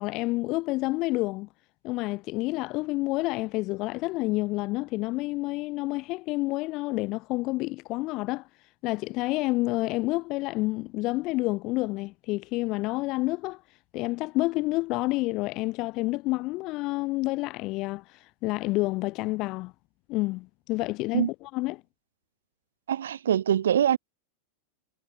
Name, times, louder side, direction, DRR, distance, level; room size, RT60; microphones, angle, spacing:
voice 1, 0.0-1.5 1.8-8.5 8.8-13.6 13.9-19.7 20.1-21.8, left 21 dB, 40° left, 7.2 m, -29 dB
voice 2, 22.9-24.0, right 10 dB, 65° right, 2.8 m, -23 dB
figure-of-eight pair, 90°, 0 cm